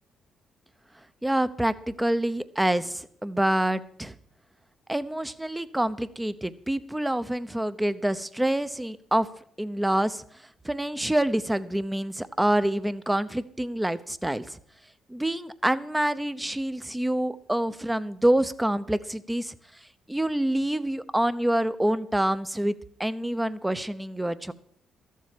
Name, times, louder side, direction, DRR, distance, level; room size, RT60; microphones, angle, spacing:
voice 1, 1.2-4.1 4.9-9.3 9.6-10.2 10.6-14.6 15.1-19.5 20.1-22.7 23.0-24.5, right 1 dB, 10° right, 13 dB, 0.9 m, -26 dB
13.5 x 7.5 x 8.5 m, 0.63 s
cardioid pair, 90°, 0 cm